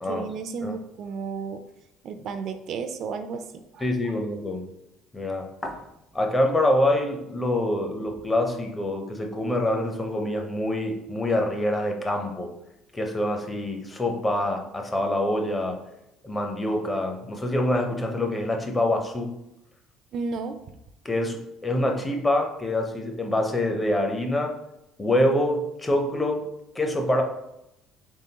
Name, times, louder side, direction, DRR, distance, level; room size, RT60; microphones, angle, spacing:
voice 1, 0.1-1.6 2.0-3.5 3.7-3.8 20.1-20.6, right 5 dB, 55° right, 8 dB, 0.3 m, -32 dB
voice 2, 3.8-4.7 5.1-5.8 6.1-12.5 12.9-15.8 16.2-19.4 21.0-24.6 25.0-26.5 26.7-27.2, left 1 dB, 15° left, 3 dB, 0.6 m, -25 dB
3.7 x 3.6 x 2.8 m, 0.86 s
cardioid pair, 120°, 0 cm